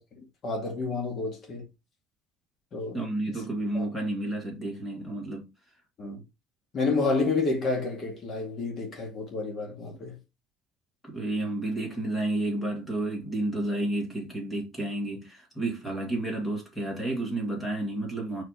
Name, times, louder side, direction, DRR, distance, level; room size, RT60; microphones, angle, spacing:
voice 1, 0.2-1.6 2.7-3.0 3.3-3.4 3.7-3.8 6.0-6.2 6.7-10.2, left 3 dB, 35° left, 2.2 m, -30 dB
voice 2, 2.9-5.5 11.0-18.4, right 1 dB, 10° left, 2.2 m, -31 dB
4.8 x 4.7 x 5.0 m
cardioid pair, 175°, 0 cm